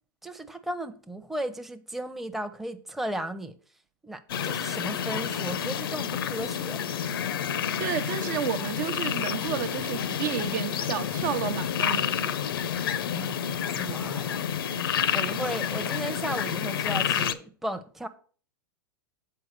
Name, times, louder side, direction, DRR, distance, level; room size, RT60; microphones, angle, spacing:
voice 1, 0.2-3.5 4.0-6.8 13.1-13.5 13.7-14.4 15.1-18.1, right 1 dB, ahead, 0.7 m, -35 dB
sound 1, 4.3-17.3, left 8 dB, 75° left, 0.7 m, -29 dB
voice 2, 7.8-12.4, right 9 dB, 60° right, 0.8 m, -31 dB
7.7 x 4.4 x 6.5 m
hypercardioid pair, 110°, 12 cm